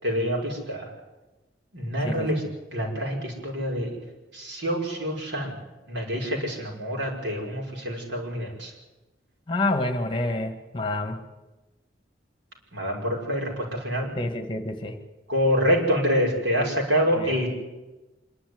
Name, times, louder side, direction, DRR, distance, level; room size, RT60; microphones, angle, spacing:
voice 1, 0.0-0.9 1.7-2.4 2.7-3.9 4.3-5.5 5.9-8.7 12.7-14.1 15.3-17.5, equal, 90° right, -1 dB, 5.5 m, -26 dB
voice 2, 9.5-11.2 14.2-15.0 17.2-17.3, left 2 dB, 30° left, 7 dB, 1.8 m, -28 dB
25.5 x 11.5 x 9.6 m, 1.1 s
head